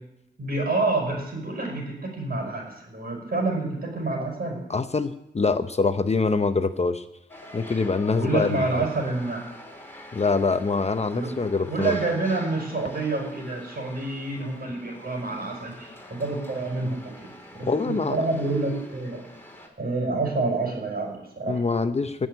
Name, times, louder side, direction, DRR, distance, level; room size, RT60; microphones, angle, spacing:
voice 1, 0.4-4.6 8.1-9.4 11.1-11.3 11.6-17.2 17.6-19.2 19.8-21.6, right 3 dB, 55° right, 0 dB, 5.9 m, -28 dB
voice 2, 4.7-7.0 7.5-8.9 10.1-12.0 17.7-18.2 21.5-22.3, left 4 dB, 35° left, 9 dB, 0.8 m, -24 dB
sound 1, 7.3-19.7, left 1 dB, 10° left, 3.0 m, -45 dB
17.0 x 6.4 x 9.6 m, 0.85 s
wide cardioid pair, 90°, 19 cm